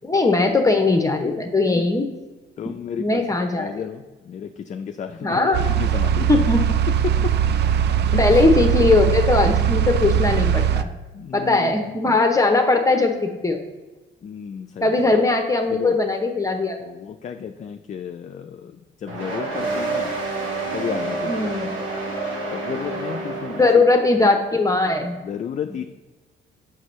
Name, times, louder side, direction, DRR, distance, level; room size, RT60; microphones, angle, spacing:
voice 1, 0.0-2.1 3.0-3.7 5.2-5.7 6.3-6.8 8.2-10.9 11.3-13.6 14.8-16.8 21.3-21.7 23.6-25.1, left 3 dB, 15° left, 3 dB, 0.7 m, -19 dB
voice 2, 2.6-6.4 6.9-7.3 8.1-8.4 11.1-11.7 12.0-12.2 14.2-15.0 15.7-16.0 16.8-20.2 20.7-21.7 22.5-23.8 25.2-25.8, left 7 dB, 35° left, 6 dB, 0.4 m, -32 dB
sound 1, 5.5-10.8, right 9 dB, 60° right, 0.4 m, -20 dB
sound 2, 19.1-24.2, right 3 dB, 80° right, 1.5 m, -28 dB
6.3 x 6.0 x 3.1 m, 1.2 s
cardioid pair, 90°, 20 cm